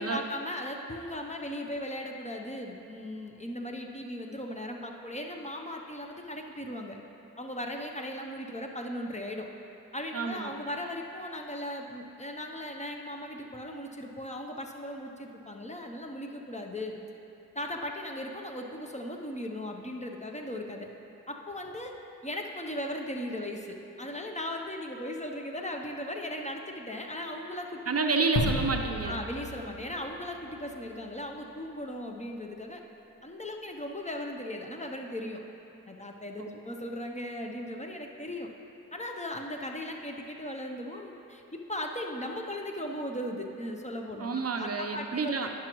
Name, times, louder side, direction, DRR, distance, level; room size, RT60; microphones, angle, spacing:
voice 1, 0.0-7.0 7.4-9.5 9.9-17.0 17.5-20.9 21.3-21.9 22.2-27.8 28.3-28.4 29.0-32.8 33.2-35.4 35.9-38.5 38.9-41.4 41.7-45.5, left 1 dB, 20° left, 2 dB, 0.7 m, -37 dB
voice 2, 10.1-10.5 27.9-29.1 36.4-36.6 44.1-45.5, right 4 dB, 45° right, 4 dB, 0.5 m, -29 dB
sound 1, 28.4-30.8, left 2 dB, 80° left, 0.8 m, -33 dB
10.0 x 6.0 x 3.0 m, 3.0 s
cardioid pair, 50°, 36 cm